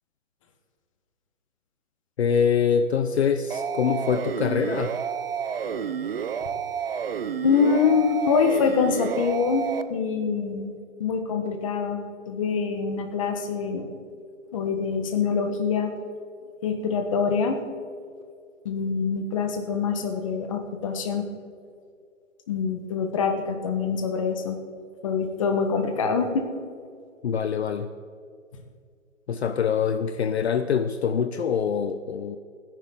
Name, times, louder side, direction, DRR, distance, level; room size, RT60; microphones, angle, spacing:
voice 1, 2.2-4.9 27.2-27.9 29.3-32.4, left 7 dB, 55° left, 10 dB, 0.7 m, -24 dB
sound 1, 3.5-9.8, right 7 dB, 45° right, 0.7 m, -30 dB
voice 2, 7.4-13.9 14.5-15.9 16.6-17.6 18.6-21.3 22.5-24.6 25.0-26.5, left 5 dB, 25° left, 6 dB, 1.2 m, -25 dB
25.5 x 10.5 x 3.7 m, 2.3 s
hypercardioid pair, 170°, 39 cm